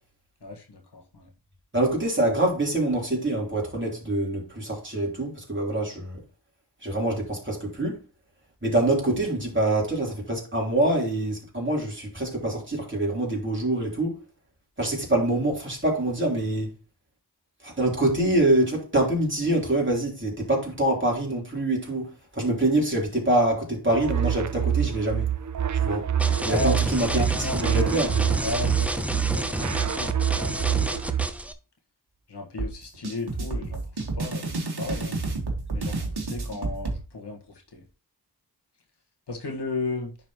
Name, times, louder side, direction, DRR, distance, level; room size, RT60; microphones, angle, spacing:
voice 1, 0.4-1.3 26.4-28.1 28.4-31.0 32.3-35.2 35.7-37.8 39.3-40.2, left 2 dB, 80° left, 1.6 m, -35 dB
voice 2, 1.7-6.2 6.8-8.0 8.6-14.2 14.8-16.7 17.6-25.3 25.7-26.1 26.4-27.3 27.5-28.4, right 1 dB, 30° right, 3.5 m, -25 dB
sound 1, 23.9-31.3, right 9 dB, 50° right, 0.4 m, -26 dB
sound 2, 26.2-31.5, equal, 5° right, 0.7 m, -30 dB
sound 3, 32.6-37.0, right 3 dB, 70° right, 1.6 m, -30 dB
10.0 x 4.2 x 3.0 m
wide cardioid pair, 60°, 40 cm